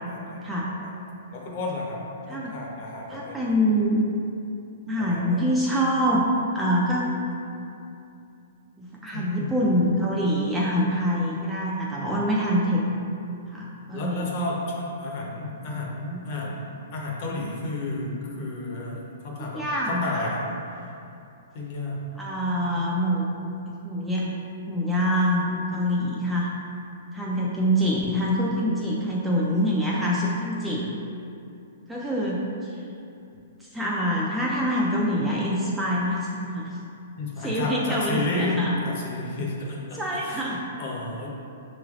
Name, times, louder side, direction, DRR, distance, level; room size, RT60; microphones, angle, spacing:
voice 1, 0.0-0.4 0.8-0.9 1.3-2.0 2.3-3.4 5.0-5.4 9.1-9.5 13.9-16.6 16.9-20.4 20.7-20.9 21.5-22.0 37.2-38.6 38.8-40.5 40.8-41.3, left 2 dB, 40° left, -2 dB, 0.7 m, -32 dB
voice 2, 3.1-4.0 4.9-6.3 6.5-7.1 8.8-12.8 13.5-14.3 15.7-15.9 19.4-20.3 22.2-23.2 23.8-24.3 24.7-26.5 27.1-30.8 31.9-32.8 33.6-36.7 37.4-38.7 39.9-40.6, equal, 5° right, -5 dB, 0.3 m, -25 dB
5.9 x 3.2 x 2.4 m, 2.6 s
hypercardioid pair, 165°, 0 cm